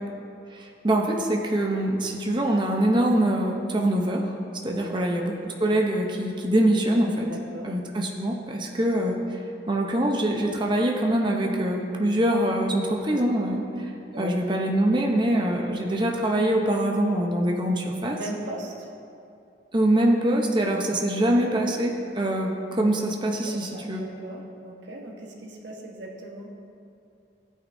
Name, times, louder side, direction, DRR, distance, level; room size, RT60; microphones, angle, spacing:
voice 1, 0.5-4.3 4.6-7.3 7.6-9.2 9.7-13.6 14.2-18.2 19.7-24.0, right 1 dB, 25° right, 0 dB, 0.8 m, -24 dB
voice 2, 4.7-5.0 7.2-7.8 14.1-14.3 18.1-18.9 23.4-26.5, right 1 dB, 70° right, -1 dB, 1.3 m, -38 dB
14.0 x 9.1 x 2.7 m, 2.6 s
head